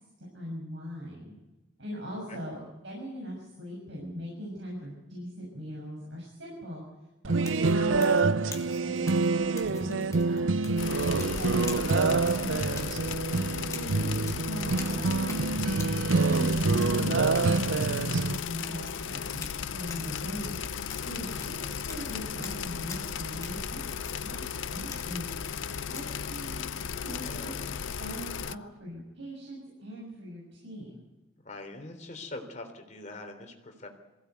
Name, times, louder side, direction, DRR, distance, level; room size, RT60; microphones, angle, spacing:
voice 1, 0.2-1.3 1.8-6.8 7.2-15.7 16.2-19.5 19.7-23.8 24.2-25.3 25.9-27.6 28.0-31.0, equal, 65° right, -3 dB, 6.8 m, -40 dB
sound 1, 7.2-18.4, right 3 dB, 90° right, 0.7 m, -26 dB
sound 2, 7.4-26.1, left 4 dB, 15° left, 2.3 m, -47 dB
sound 3, 10.8-28.5, left 7 dB, 80° left, 0.6 m, -36 dB
voice 2, 27.2-27.6 31.4-33.9, left 2 dB, 40° left, 5 dB, 3.3 m, -43 dB
22.5 x 16.5 x 8.2 m, 1.1 s
head